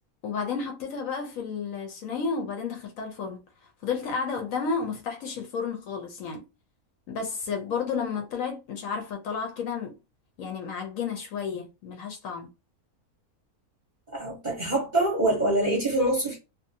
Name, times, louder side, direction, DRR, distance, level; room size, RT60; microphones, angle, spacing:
voice 1, 0.2-3.4 3.8-6.4 7.1-10.0 10.4-12.5, left 5 dB, 70° left, 0.9 m, -32 dB
voice 2, 14.1-16.4, right 1 dB, 40° right, 0.8 m, -25 dB
2.6 x 2.3 x 2.6 m
omnidirectional pair, 1.6 m